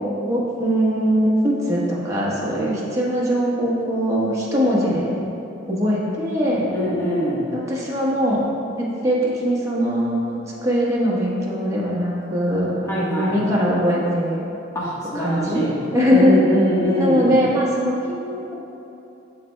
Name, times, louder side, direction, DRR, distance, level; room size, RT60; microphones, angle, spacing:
voice 1, 0.2-5.1 5.7-6.7 7.5-8.4 9.0-14.4 15.1-15.6 15.9-16.4 16.9-18.5, equal, 15° right, -6 dB, 1.2 m, -21 dB
voice 2, 6.7-7.5 12.9-13.4 14.7-15.8 16.1-17.4, equal, 15° left, -7 dB, 1.3 m, -23 dB
12.5 x 4.2 x 2.2 m, 2.8 s
head